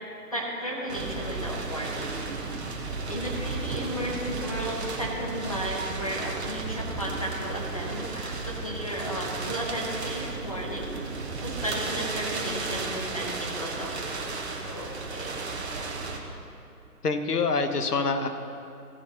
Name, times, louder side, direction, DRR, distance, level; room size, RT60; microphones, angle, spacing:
voice 1, 0.3-2.1 3.1-10.9 11.4-15.4, equal, 25° left, -3 dB, 0.7 m, -34 dB
sound 1, 0.9-16.2, right 3 dB, 45° right, 1.2 m, -34 dB
voice 2, 17.0-18.3, left 4 dB, 70° left, 7 dB, 1.1 m, -25 dB
14.5 x 10.0 x 2.9 m, 2.6 s
figure-of-eight pair, 150°, 48 cm